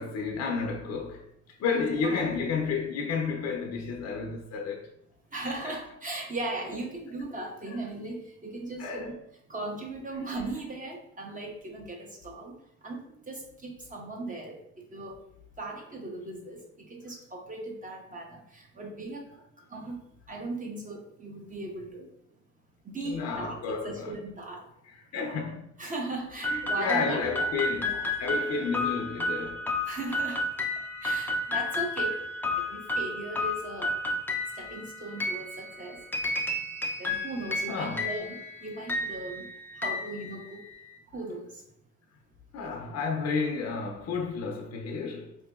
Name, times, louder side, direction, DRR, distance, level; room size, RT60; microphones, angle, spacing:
voice 1, 0.0-4.9 5.6-5.8 7.7-7.8 8.8-9.1 23.0-24.2 24.8-25.7 26.4-29.7 37.7-38.1 42.5-45.4, left 5 dB, 55° left, 0.5 m, -31 dB
voice 2, 1.7-2.5 5.3-9.1 9.5-12.5 12.8-13.0 13.3-15.2 15.6-19.2 19.7-20.0 20.3-22.1 22.8-24.6 25.1-25.3 25.8-27.5 27.8-28.0 29.9-30.4 31.0-32.2 32.5-33.9 34.6-36.0 37.0-39.5 39.8-40.6 41.1-41.6, right 2 dB, 25° right, 0.9 m, -38 dB
sound 1, 26.4-40.9, left 2 dB, 5° left, 0.4 m, -32 dB
4.3 x 2.7 x 2.3 m
cardioid pair, 90°, 30 cm